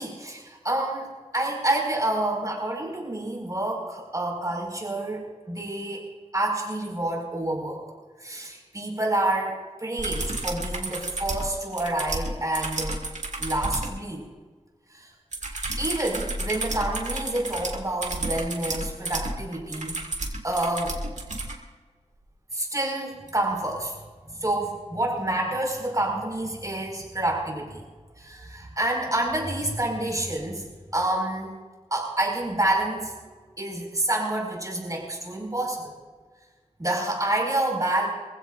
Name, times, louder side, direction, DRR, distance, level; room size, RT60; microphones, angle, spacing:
voice 1, 0.0-6.1 6.3-7.8 8.2-13.0 13.4-14.2 14.9-15.1 15.8-20.0 20.4-20.9 22.5-23.9 24.3-27.8 28.2-30.7 30.9-31.6 31.9-35.9 36.8-38.1, right 1 dB, 30° right, -1 dB, 5.2 m, -28 dB
sound 1, 10.0-14.0 15.3-21.6 23.3-23.4, right 2 dB, 80° right, 2.2 m, -32 dB
26.0 x 15.5 x 2.6 m, 1.4 s
wide cardioid pair, 65°, 12 cm